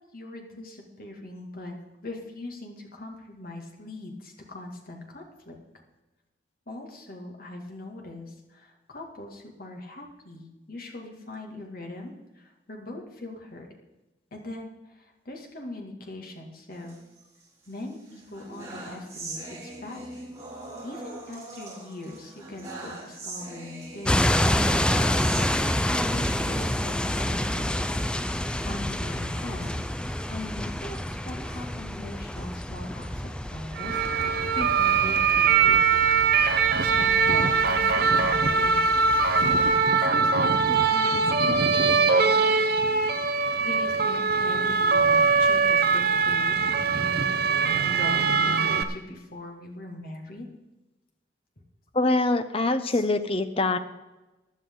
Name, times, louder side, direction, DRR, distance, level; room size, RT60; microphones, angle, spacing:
voice 1, 0.1-1.7 2.0-5.6 6.7-13.7 14.3-17.0 17.7-20.3 20.8-27.7 28.6-35.8 36.8-38.8 39.4-39.6 40.1-42.7 43.3-47.4 47.8-50.5 52.8-53.1, left 2 dB, 50° left, 1 dB, 2.3 m, -40 dB
sound 1, 16.7-17.7 18.1-26.8 27.2-27.4 27.6-27.7 28.3-30.8 31.3-32.7, right 2 dB, 20° right, 3.8 m, -42 dB
sound 2, 24.0-39.8, left 1 dB, 5° left, 0.4 m, -29 dB
sound 3, 33.8-48.8, right 5 dB, 55° right, 0.8 m, -22 dB
voice 2, 51.9-53.8, left 2 dB, 30° left, 9 dB, 0.7 m, -24 dB
16.0 x 11.0 x 3.9 m, 1.1 s
head